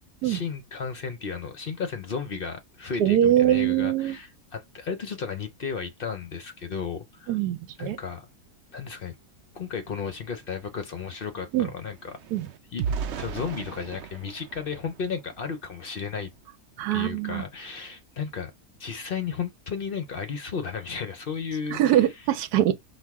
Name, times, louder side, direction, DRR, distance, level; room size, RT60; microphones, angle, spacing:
voice 1, 0.2-7.4 7.8-8.3 8.7-9.2 9.6-12.2 12.7-12.8 13.2-16.3 16.9-18.5 18.8-22.1, left 6 dB, 55° left, 0.6 m, -34 dB
voice 2, 3.0-4.2 7.3-8.0 11.5-11.7 12.3-12.5 16.8-17.4 21.7-22.8, right 11 dB, 80° right, 1.1 m, -23 dB
sound 1, 9.8-9.9 10.2-15.7 16.2-16.4 16.8-17.0, right 6 dB, 60° right, 0.7 m, -37 dB
6.1 x 2.4 x 3.5 m
omnidirectional pair, 1.7 m